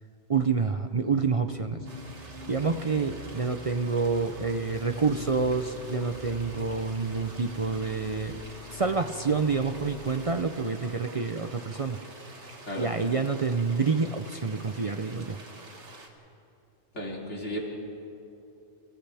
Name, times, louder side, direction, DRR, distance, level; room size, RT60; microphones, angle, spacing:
voice 1, 0.3-1.9 2.5-8.4 8.7-12.0 12.8-15.4, right 4 dB, 40° right, 7 dB, 0.6 m, -28 dB
sound 1, 1.0-9.6, equal, 25° left, 5.4 m, -48 dB
sound 2, 1.9-16.1, right 2 dB, 80° right, 2.1 m, -47 dB
Engine, 4.6-10.5, left 5 dB, 70° left, 1.6 m, -45 dB
voice 2, 16.9-17.6, left 1 dB, 85° left, -3 dB, 3.7 m, -35 dB
29.5 x 26.0 x 3.5 m, 2.7 s
omnidirectional pair, 1.2 m